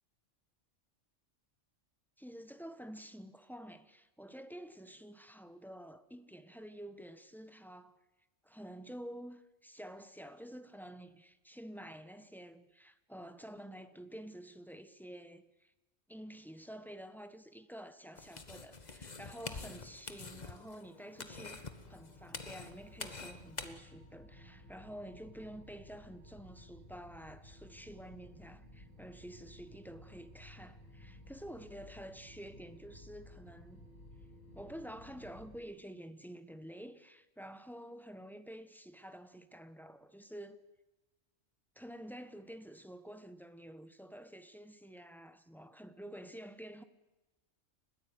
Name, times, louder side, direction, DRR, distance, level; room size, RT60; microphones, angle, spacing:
voice 1, 2.2-8.0 8.4-15.7 16.1-33.9 34.5-40.6 41.7-46.8, equal, ahead, 1.2 m, -49 dB
sound 1, 18.2-23.7, left 3 dB, 35° left, 1.5 m, -47 dB
sound 2, 21.3-35.6, left 1 dB, 80° left, 8.0 m, -56 dB
30.0 x 15.0 x 9.5 m
omnidirectional pair, 1.3 m